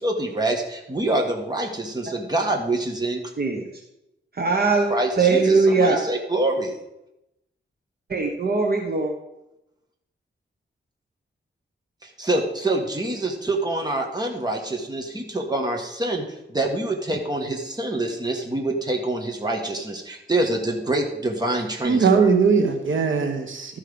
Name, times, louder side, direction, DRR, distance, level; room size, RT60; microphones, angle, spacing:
voice 1, 0.0-3.2 4.9-6.7 12.0-22.3, right 2 dB, 20° right, 1 dB, 1.5 m, -26 dB
voice 2, 4.4-4.9 5.2-6.0 8.1-9.1, right 4 dB, 50° right, 1 dB, 1.1 m, -20 dB
voice 3, 21.8-23.8, right 5 dB, 75° right, 3 dB, 1.2 m, -20 dB
13.0 x 5.6 x 5.1 m, 0.87 s
wide cardioid pair, 130°, 20 cm